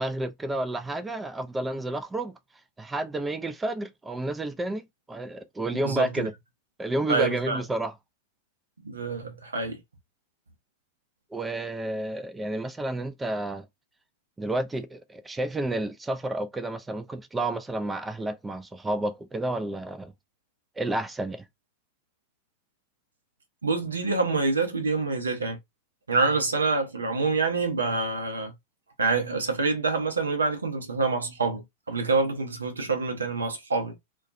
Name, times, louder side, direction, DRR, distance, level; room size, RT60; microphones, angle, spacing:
voice 1, 0.0-2.4 2.8-6.3 6.8-7.9 11.3-13.7 14.4-20.1 20.8-21.5, right 1 dB, 10° right, 0.4 m, -30 dB
voice 2, 5.8-6.3 7.1-7.6 8.8-9.8 23.6-25.6 26.1-28.5 29.0-33.9, right 4 dB, 75° right, 0.7 m, -26 dB
2.3 x 2.2 x 2.5 m
figure-of-eight pair, 90°, 0 cm